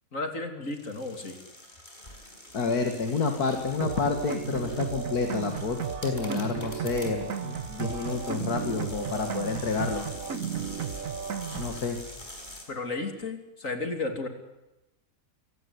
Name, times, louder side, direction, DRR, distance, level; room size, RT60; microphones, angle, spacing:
voice 1, 0.1-1.4 12.7-14.3, left 3 dB, 60° left, 5 dB, 3.3 m, -33 dB
sound 1, 0.6-12.6, left 1 dB, 30° left, 5.4 m, -46 dB
voice 2, 2.5-10.1 11.5-12.0, left 4 dB, 85° left, 4 dB, 2.4 m, -29 dB
sound 2, 3.8-11.8, right 7 dB, 60° right, 1.5 m, -34 dB
27.0 x 17.5 x 9.7 m, 0.96 s
omnidirectional pair, 1.6 m